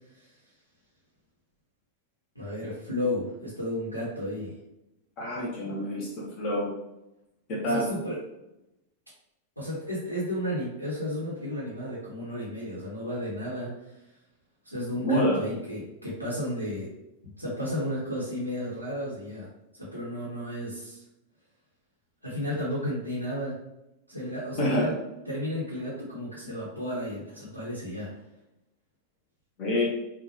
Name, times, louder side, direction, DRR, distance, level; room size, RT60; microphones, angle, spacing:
voice 1, 2.3-4.5 7.6-8.2 9.6-13.9 14.6-16.9 17.2-19.5 19.8-21.0 22.2-23.6 24.1-24.9 25.3-28.2, left 1 dB, 85° left, -7 dB, 1.3 m, -33 dB
voice 2, 5.2-6.7 7.5-7.9 15.0-15.4 24.6-24.9 29.6-29.8, left 1 dB, 35° left, -3 dB, 1.0 m, -27 dB
5.6 x 2.5 x 3.0 m, 0.91 s
figure-of-eight pair, 90°, 0 cm